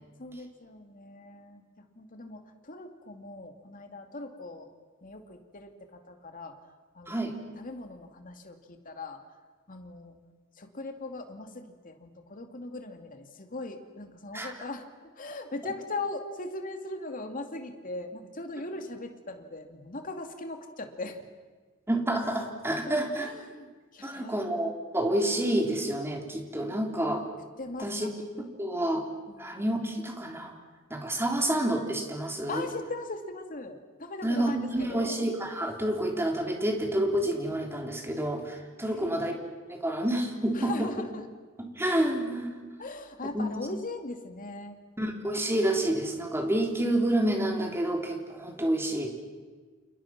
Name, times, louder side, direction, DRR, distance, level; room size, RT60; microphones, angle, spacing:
voice 1, 0.2-4.7 5.0-6.6 6.9-7.3 7.6-9.2 9.7-10.2 10.5-14.9 15.1-21.2 22.9-24.4 27.6-28.1 29.3-29.5 32.5-35.2 38.8-39.4 40.5-41.2 42.8-44.8, left 2 dB, 40° left, 5 dB, 2.6 m, -39 dB
voice 2, 21.9-23.3 24.0-27.2 27.8-28.1 28.6-29.0 29.4-30.5 30.9-32.7 34.2-39.4 39.7-40.9 41.6-42.5 43.3-43.5 45.0-49.1, right 1 dB, 10° right, 2 dB, 3.6 m, -29 dB
29.5 x 28.5 x 6.1 m, 1.4 s
head